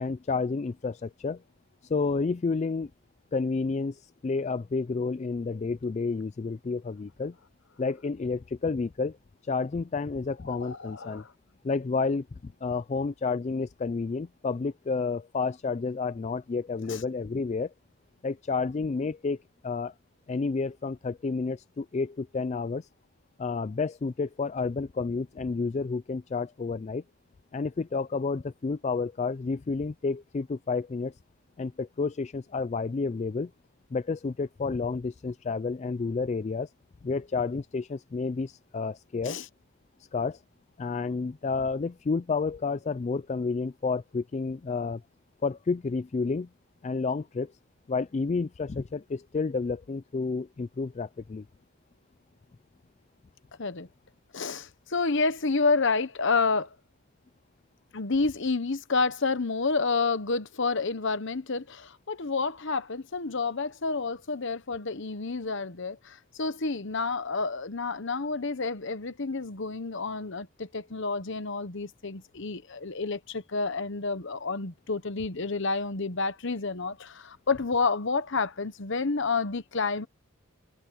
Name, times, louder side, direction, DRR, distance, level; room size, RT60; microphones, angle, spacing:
voice 1, 0.0-1.4 1.8-2.9 3.3-7.3 7.8-9.2 9.4-11.2 11.6-17.7 18.2-19.9 20.3-22.9 23.4-27.0 27.5-31.1 31.6-33.5 33.9-36.7 37.0-39.4 40.1-40.4 40.8-45.0 45.4-46.5 46.8-47.5 47.9-51.5, left 4 dB, 30° left, 0.3 m, -30 dB
voice 2, 10.5-11.3 16.9-17.0 39.2-39.5 53.6-53.9 54.3-56.7 57.9-80.1, left 4 dB, 60° left, 1.0 m, -29 dB
head